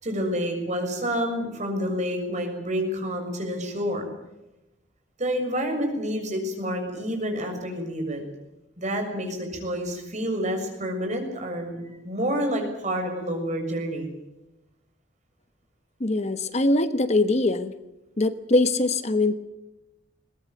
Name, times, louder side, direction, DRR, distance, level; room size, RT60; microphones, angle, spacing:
voice 1, 0.0-4.0 5.2-8.2 8.8-14.1, equal, 40° right, 3 dB, 6.7 m, -28 dB
voice 2, 16.0-17.7 18.2-19.4, left 2 dB, 35° left, 11 dB, 1.1 m, -22 dB
22.0 x 19.5 x 9.3 m, 0.96 s
head